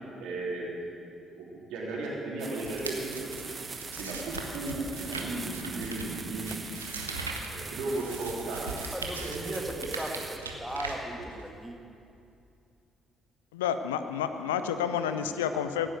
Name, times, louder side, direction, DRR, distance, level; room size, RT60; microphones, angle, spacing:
voice 1, 0.2-3.3 4.0-6.6 7.5-8.7 9.1-10.2, right 2 dB, 65° right, -4 dB, 3.5 m, -36 dB
sound 1, 2.4-10.4, right 4 dB, 35° right, 0.9 m, -42 dB
sound 2, 2.6-11.6, right 3 dB, 85° right, 1.0 m, -40 dB
voice 2, 8.9-11.8 15.1-15.9, right 1 dB, ahead, 2 dB, 1.9 m, -38 dB
voice 3, 13.5-15.9, left 8 dB, 75° left, 10 dB, 0.5 m, -30 dB
16.5 x 9.2 x 7.8 m, 2.6 s
figure-of-eight pair, 45°, 0 cm